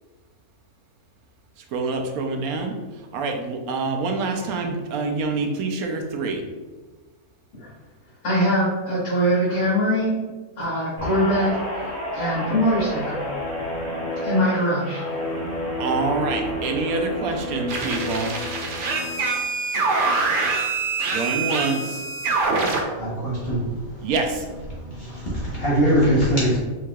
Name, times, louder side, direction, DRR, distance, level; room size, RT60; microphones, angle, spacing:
voice 1, 1.7-2.7 3.1-6.4 15.8-18.3 21.1-22.0 24.0-24.5, right 3 dB, 80° right, 1.1 m, -26 dB
voice 2, 8.2-10.1 10.6-13.2 14.2-15.0, equal, 70° left, 1.9 m, -22 dB
Guitar, 11.0-19.6 20.0-20.3, left 1 dB, 15° right, 1.0 m, -30 dB
sound 1, 17.7-22.8, right 3 dB, 65° right, 0.5 m, -24 dB
voice 3, 22.7-24.1 24.7-26.6, equal, 45° left, 1.2 m, -23 dB
4.6 x 3.7 x 2.3 m
omnidirectional pair, 1.5 m